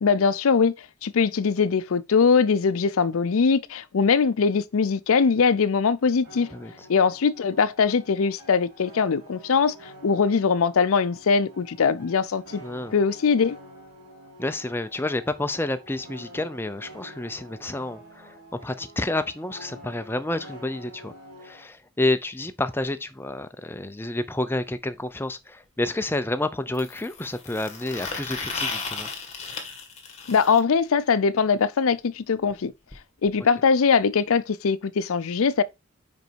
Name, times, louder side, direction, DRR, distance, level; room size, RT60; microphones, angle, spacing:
voice 1, 0.0-6.5 6.9-12.6 12.9-13.6 30.3-32.7 33.2-35.6, left 5 dB, 70° left, 0.5 m, -21 dB
sound 1, 6.2-21.7, equal, 75° right, 3.6 m, -47 dB
voice 2, 6.5-6.9 12.6-12.9 14.4-21.1 21.4-29.1, left 2 dB, 10° left, 0.5 m, -29 dB
sound 2, 26.7-30.6 32.5-32.6 32.9-33.0 33.3-33.4 34.3-34.4, left 4 dB, 30° left, 1.6 m, -35 dB
5.3 x 5.3 x 4.5 m
head